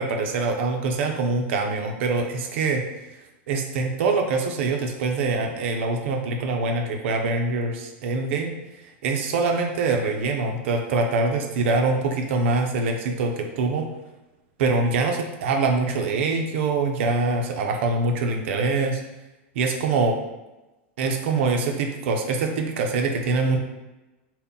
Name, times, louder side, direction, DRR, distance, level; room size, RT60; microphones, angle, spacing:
voice 1, 0.0-2.8 3.5-8.5 9.0-13.8 14.6-19.0 19.6-20.2 21.0-23.6, right 3 dB, 70° right, 3 dB, 0.4 m, -24 dB
2.1 x 2.1 x 3.7 m, 1.0 s
hypercardioid pair, 115°, 7 cm